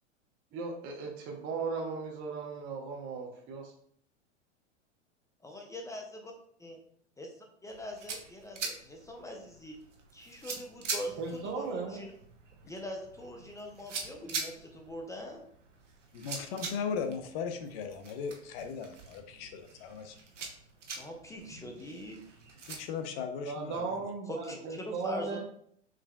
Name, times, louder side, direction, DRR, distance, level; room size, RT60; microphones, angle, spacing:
voice 1, 0.5-3.7 11.2-12.0 23.4-25.4, right 4 dB, 35° right, 1 dB, 0.8 m, -37 dB
voice 2, 5.4-6.3 6.6-6.8 7.2-9.8 10.1-12.1 12.6-15.4 21.0-22.2 24.3-24.6 24.9-25.4, equal, 10° left, 2 dB, 0.4 m, -42 dB
sound 1, 7.7-22.8, right 4 dB, 90° right, 0.9 m, -44 dB
voice 3, 16.1-20.2 22.7-24.0, left 6 dB, 55° left, 7 dB, 0.7 m, -37 dB
4.9 x 3.3 x 2.2 m, 0.64 s
hypercardioid pair, 105°, 35 cm